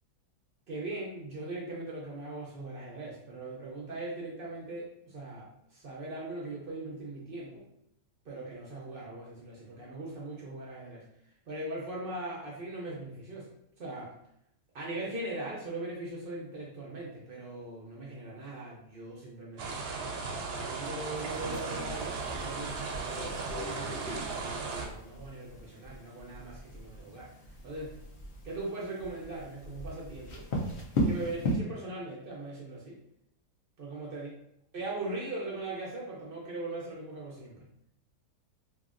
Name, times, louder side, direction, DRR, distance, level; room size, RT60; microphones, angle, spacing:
voice 1, 0.7-7.6 8.2-11.0 11.5-13.5 13.8-14.1 14.7-19.8 20.5-27.3 27.6-27.9 28.4-30.4 31.0-33.0 33.8-34.3 34.7-37.6, right 2 dB, 60° right, -4 dB, 0.5 m, -40 dB
sound 1, 19.6-24.9, right 4 dB, 90° right, 1.1 m, -36 dB
sound 2, 21.1-31.6, equal, 60° left, 0.7 m, -38 dB
2.8 x 2.8 x 2.4 m, 0.78 s
omnidirectional pair, 1.7 m